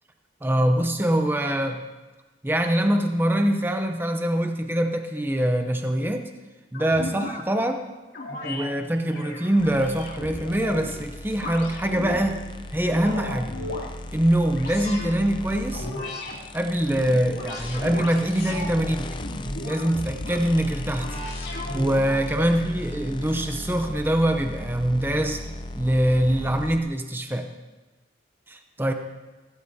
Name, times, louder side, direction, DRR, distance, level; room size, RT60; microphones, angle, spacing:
voice 1, 0.4-1.8 2.4-6.3 6.7-7.9 8.4-12.4 12.7-13.5 14.1-15.9 16.5-19.1 19.6-21.2 21.7-25.4 25.8-27.5 28.5-28.9, right 1 dB, 10° right, 5 dB, 0.7 m, -24 dB
sound 1, 6.7-7.4 8.1-8.6 9.1-10.9 11.3-12.2 12.7-13.9 14.5-15.1 15.7-16.4 16.8-18.7 19.2-20.4 21.0-22.2, left 1 dB, 60° left, 2.6 m, -35 dB
sound 2, 9.6-26.8, left 1 dB, 25° left, 0.5 m, -37 dB
16.5 x 15.0 x 2.8 m, 1.2 s
head